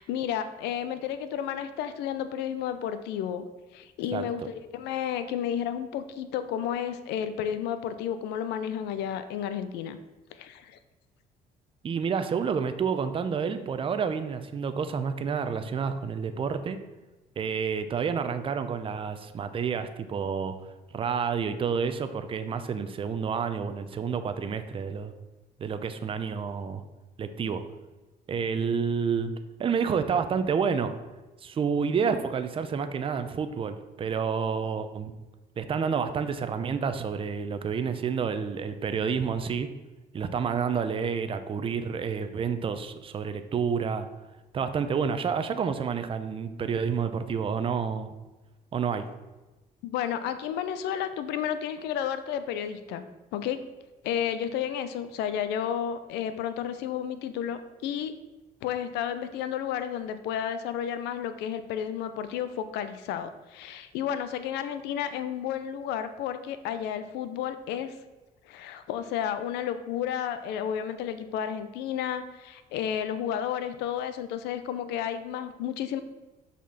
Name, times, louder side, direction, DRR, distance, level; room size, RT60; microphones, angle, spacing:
voice 1, 0.0-3.4 3.7-10.0 10.3-10.8 49.8-53.0 53.3-53.6 54.0-58.1 58.6-68.0 68.5-76.0, left 9 dB, 90° left, 11 dB, 0.6 m, -32 dB
voice 2, 11.8-16.8 17.4-25.1 25.6-26.8 27.2-27.6 28.3-29.3 29.6-30.9 31.4-35.1 35.6-39.7 40.1-44.1 44.5-48.1 48.7-49.1, right 6 dB, 30° right, 9 dB, 0.6 m, -29 dB
6.0 x 4.2 x 5.7 m, 1.1 s
cardioid pair, 110°, 17 cm